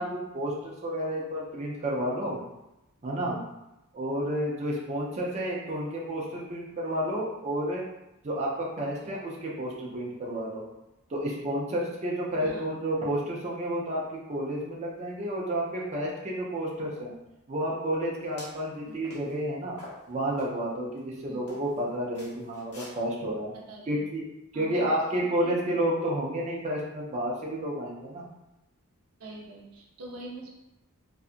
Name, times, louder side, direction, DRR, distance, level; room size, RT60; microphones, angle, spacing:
voice 1, 0.0-2.4 3.0-3.4 3.9-7.8 8.2-10.6 11.1-17.1 17.5-19.8 20.1-23.5 23.9-24.2 24.5-28.3, right 1 dB, 30° right, -4 dB, 0.5 m, -31 dB
sound 1, 18.2-18.6 19.0-19.3 19.8-20.5 21.0-21.1 21.5-21.8 22.1-22.9, left 1 dB, 80° left, 1.0 m, -46 dB
voice 2, 23.5-24.0 24.5-25.5 29.2-30.5, right 2 dB, 90° right, -2 dB, 0.6 m, -44 dB
2.7 x 2.4 x 2.4 m, 0.93 s
head